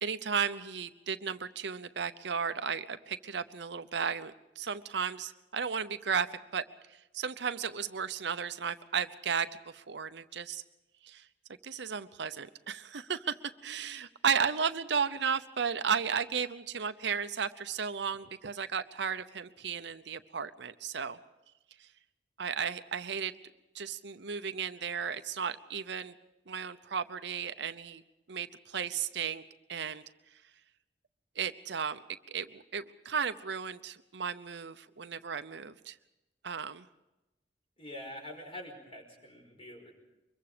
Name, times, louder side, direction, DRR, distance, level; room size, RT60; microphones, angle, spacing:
voice 1, 0.0-6.3 6.5-6.6 6.9-10.6 11.0-11.3 11.6-13.4 13.6-21.2 21.8-21.9 22.4-23.3 23.7-26.1 26.5-28.0 28.3-29.4 29.7-30.0 31.4-32.0 32.3-36.0 36.4-36.9, right 6 dB, 65° right, 11 dB, 0.8 m, -34 dB
voice 2, 37.8-39.9, left 1 dB, 30° left, 3 dB, 5.2 m, -45 dB
24.0 x 22.5 x 5.1 m, 0.99 s
head